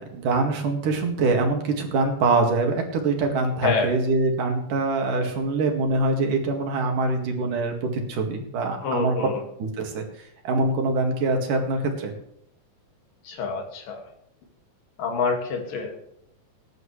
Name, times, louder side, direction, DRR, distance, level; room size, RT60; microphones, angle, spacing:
voice 1, 0.1-9.2 9.6-10.0 10.5-12.1, right 3 dB, 75° right, 3 dB, 3.7 m, -24 dB
voice 2, 8.8-9.4 13.3-14.0 15.0-15.9, left 5 dB, 90° left, 3 dB, 3.9 m, -27 dB
20.5 x 10.5 x 3.3 m, 0.75 s
omnidirectional pair, 3.8 m